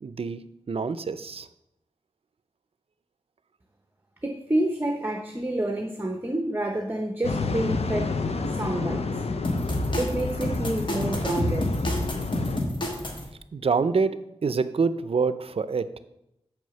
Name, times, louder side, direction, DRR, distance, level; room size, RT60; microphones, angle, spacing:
voice 1, 0.0-1.5 13.5-15.9, right 5 dB, 65° right, 14 dB, 0.5 m, -26 dB
voice 2, 4.2-8.1 8.5-9.1 10.0-11.7, right 1 dB, 20° right, 3 dB, 0.8 m, -28 dB
sound 1, 7.2-12.6, left 4 dB, 75° left, 0.6 m, -30 dB
sound 2, 9.4-13.3, left 1 dB, 50° left, 1.4 m, -29 dB
6.2 x 4.9 x 6.8 m, 0.84 s
wide cardioid pair, 85°, 11 cm